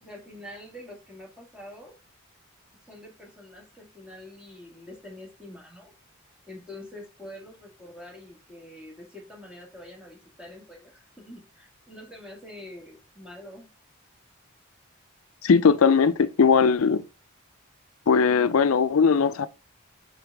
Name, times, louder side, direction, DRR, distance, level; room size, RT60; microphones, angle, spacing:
voice 1, 0.0-2.0 2.8-5.9 6.5-13.7, left 1 dB, 5° right, 2.1 m, -45 dB
voice 2, 15.4-17.0 18.1-19.5, left 5 dB, 75° left, 0.5 m, -19 dB
6.9 x 4.0 x 3.5 m
head